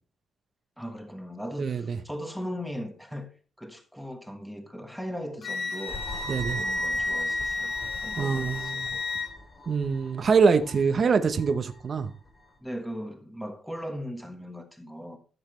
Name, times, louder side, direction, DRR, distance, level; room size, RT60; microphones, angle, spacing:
voice 1, 0.8-3.3 3.6-6.0 6.5-7.7 8.0-9.1 12.6-15.2, equal, ahead, 1.3 m, -38 dB
voice 2, 1.6-2.0 6.3-6.6 8.2-8.9 9.7-12.1, right 5 dB, 45° right, 0.9 m, -24 dB
Wind instrument woodwind instrument, 5.4-9.3, left 2 dB, 60° left, 2.0 m, -31 dB
sound 1, 5.9-12.6, left 2 dB, 25° left, 3.7 m, -44 dB
14.0 x 7.3 x 3.2 m
cardioid pair, 135°, 0 cm